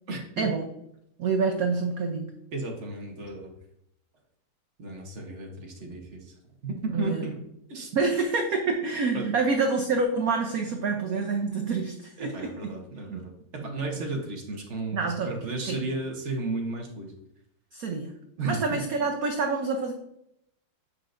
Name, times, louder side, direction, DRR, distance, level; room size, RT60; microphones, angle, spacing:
voice 1, 0.1-0.5 2.5-3.5 4.8-6.3 6.6-7.3 7.7-7.9 9.1-9.3 12.2-17.1 18.4-18.8, right 3 dB, 50° right, 2 dB, 0.9 m, -34 dB
voice 2, 1.2-2.3 6.9-7.4 7.9-12.7 13.1-13.2 13.6-13.9 14.9-15.3 15.6-15.8 17.7-18.1 18.4-19.9, right 4 dB, 75° right, 3 dB, 0.8 m, -27 dB
7.9 x 5.5 x 2.5 m, 0.78 s
omnidirectional pair, 2.3 m